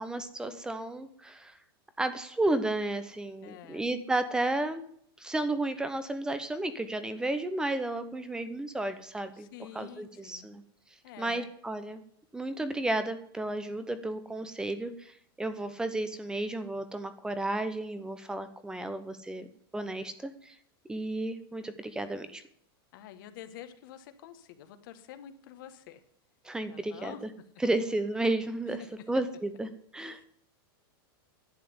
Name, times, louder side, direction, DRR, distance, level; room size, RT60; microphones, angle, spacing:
voice 1, 0.0-1.5 2.0-4.8 5.2-10.6 11.2-12.0 12.3-19.5 19.7-20.6 20.9-22.4 26.4-27.3 27.6-30.2, right 2 dB, 5° right, 11 dB, 0.9 m, -33 dB
voice 2, 3.4-3.9 9.3-10.5 11.0-11.5 22.9-26.0 26.7-27.2 30.0-30.2, left 10 dB, 60° left, 9 dB, 1.4 m, -48 dB
11.0 x 7.6 x 9.6 m, 0.63 s
supercardioid pair, 155°, 13 cm